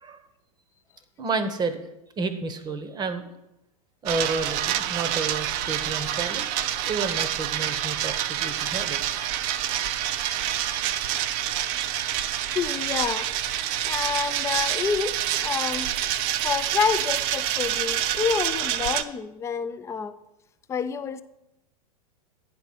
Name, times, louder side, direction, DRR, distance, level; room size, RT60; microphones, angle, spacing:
voice 1, 1.2-1.8 2.2-3.3 4.0-6.5 6.8-9.2, right 4 dB, 20° right, 10 dB, 0.8 m, -30 dB
sound 1, 4.1-19.0, right 11 dB, 40° right, 0.5 m, -27 dB
voice 2, 12.5-15.9 16.4-20.1 20.7-21.2, left 6 dB, 15° left, 12 dB, 0.4 m, -28 dB
9.4 x 4.3 x 6.2 m, 0.89 s
figure-of-eight pair, 95°, 20 cm